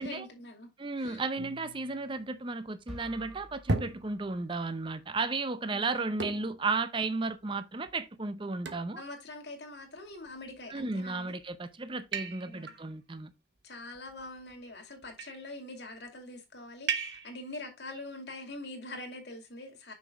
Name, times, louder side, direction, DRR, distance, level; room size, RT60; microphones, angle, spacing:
voice 1, 0.0-0.7 1.0-1.2 5.7-6.0 9.0-11.3 12.4-12.8 13.6-19.9, left 2 dB, 70° left, 2.4 m, -44 dB
voice 2, 0.8-9.0 10.7-13.3, right 3 dB, 30° right, 0.6 m, -34 dB
sound 1, 1.4-2.8 3.7-4.6 6.2-6.7 7.3-7.4 7.9-8.0 8.7-9.0 10.1-10.6 11.2-11.5 12.1-12.8 13.9-14.5 15.0-15.5 16.9-17.5, right 3 dB, 90° right, 1.1 m, -37 dB
sound 2, 2.9-4.9, equal, 5° right, 1.6 m, -50 dB
6.2 x 6.1 x 3.5 m
head